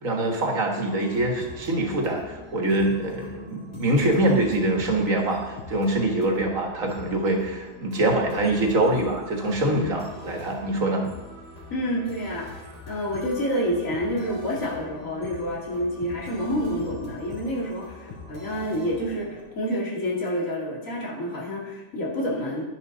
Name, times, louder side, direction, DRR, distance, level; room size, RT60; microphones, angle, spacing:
voice 1, 0.0-11.0, right 1 dB, 80° right, 1 dB, 2.2 m, -24 dB
sound 1, 0.9-19.4, left 3 dB, 55° left, 4.4 m, -43 dB
voice 2, 11.7-12.6 12.9-22.6, equal, 75° left, -3 dB, 3.1 m, -28 dB
12.0 x 10.5 x 4.1 m, 1.1 s
omnidirectional pair, 1.4 m